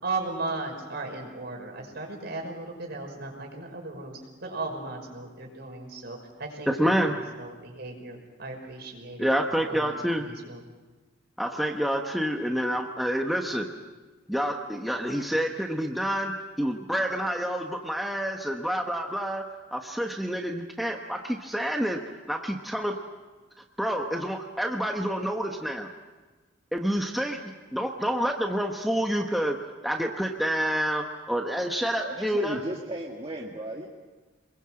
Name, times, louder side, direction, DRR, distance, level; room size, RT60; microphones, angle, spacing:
voice 1, 0.0-9.3 9.7-10.6, right 3 dB, 55° right, 2 dB, 5.8 m, -36 dB
voice 2, 6.7-7.1 9.2-10.3 11.4-13.7 14.3-19.4 19.7-22.0 22.3-23.0 23.8-25.9 26.7-29.6 29.8-32.6, equal, ahead, 2 dB, 1.2 m, -28 dB
voice 3, 32.0-33.9, right 1 dB, 30° right, -2 dB, 1.9 m, -35 dB
28.0 x 21.5 x 7.7 m, 1.3 s
head